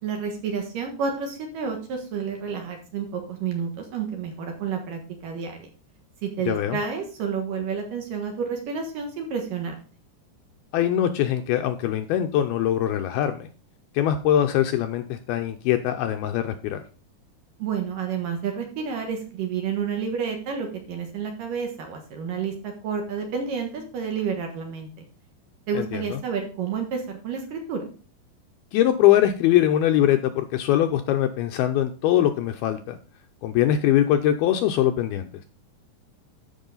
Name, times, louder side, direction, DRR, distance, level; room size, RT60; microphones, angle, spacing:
voice 1, 0.0-5.7 6.2-9.8 17.6-25.0 25.7-27.8, right 6 dB, 65° right, 3 dB, 2.7 m, -30 dB
voice 2, 6.5-6.8 10.7-13.5 13.9-16.8 25.8-26.2 28.7-33.0 33.4-35.3, left 11 dB, 80° left, 7 dB, 2.3 m, -22 dB
12.5 x 5.6 x 4.0 m, 0.39 s
omnidirectional pair, 4.9 m